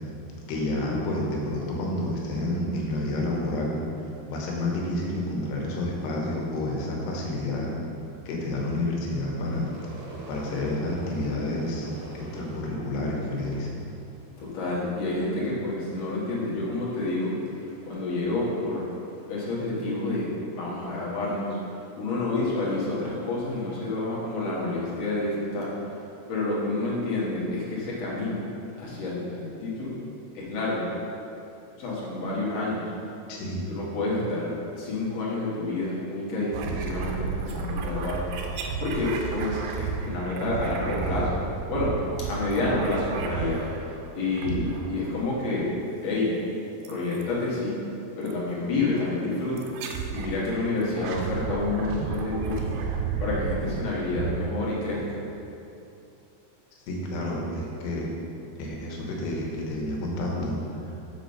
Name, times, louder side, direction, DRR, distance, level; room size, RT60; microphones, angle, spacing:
voice 1, 0.5-3.8 4.3-7.7 8.3-9.7 10.3-11.9 12.1-13.8 33.3-33.6 56.9-58.1 58.6-60.5, left 1 dB, 80° left, -2 dB, 3.1 m, -29 dB
Crowd / Fireworks, 9.4-14.8 15.1-15.7 16.0-19.5, right 1 dB, 60° right, 2.1 m, -45 dB
voice 2, 14.4-17.3 17.8-18.9 19.3-20.3 20.5-21.6 22.0-25.7 26.3-28.5 28.8-30.0 30.3-30.9 31.8-32.8 33.7-38.2 38.8-41.4 41.7-42.0 42.3-43.6 44.1-45.7 46.0-46.4 46.9-47.8 48.2-49.7 50.1-52.8 53.2-55.2, left 2 dB, 55° left, -6 dB, 1.9 m, -29 dB
sound 1, 36.5-44.0 44.4-45.2 46.9-47.3 48.3-48.4 49.6-50.4 50.8-55.2, right 5 dB, 80° right, 2.5 m, -32 dB
6.6 x 5.2 x 5.4 m, 2.8 s
omnidirectional pair, 4.8 m